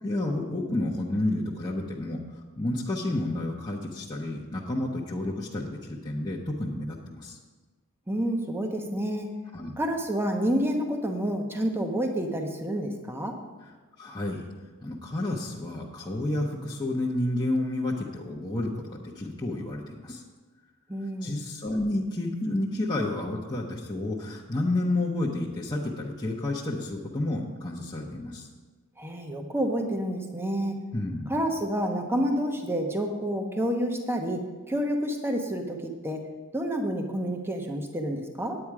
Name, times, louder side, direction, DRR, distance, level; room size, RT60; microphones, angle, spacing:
voice 1, 0.0-2.2 2.6-7.4 9.5-9.7 13.6-13.7 14.0-14.4 14.8-20.2 21.2-28.5 30.9-31.4, left 1 dB, 20° left, -4 dB, 0.8 m, -30 dB
voice 2, 8.1-9.3 9.8-13.4 20.9-21.5 29.0-30.8 31.3-36.2 36.5-38.6, equal, 10° right, 3 dB, 0.9 m, -29 dB
9.4 x 8.8 x 4.8 m, 1.3 s
head